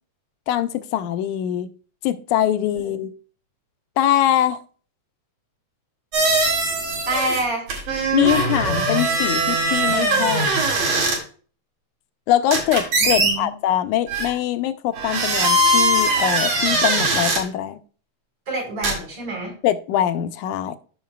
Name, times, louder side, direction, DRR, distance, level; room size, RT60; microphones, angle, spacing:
voice 1, 0.5-1.7 2.0-3.1 4.0-4.6 8.1-10.5 12.3-17.8 19.6-20.8, left 11 dB, 85° left, 2.1 m, -22 dB
sound 1, 6.1-7.4 7.7-11.2 12.5-13.3 14.1-14.3 14.9-17.4 18.8-18.9, right 2 dB, 75° right, 3.5 m, -20 dB
voice 2, 7.1-7.7 13.0-13.5 18.5-19.5, right 2 dB, 45° right, 5.3 m, -27 dB
14.0 x 5.7 x 2.2 m
omnidirectional pair, 3.5 m